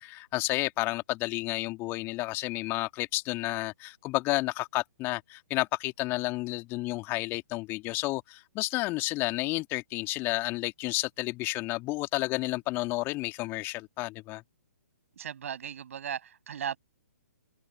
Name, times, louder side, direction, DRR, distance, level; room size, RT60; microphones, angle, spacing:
voice 1, 0.0-14.4, left 21 dB, 25° left, 2.5 m, -31 dB
voice 2, 15.2-16.8, right 8 dB, 50° right, 7.5 m, -36 dB
figure-of-eight pair, 125°, 9 cm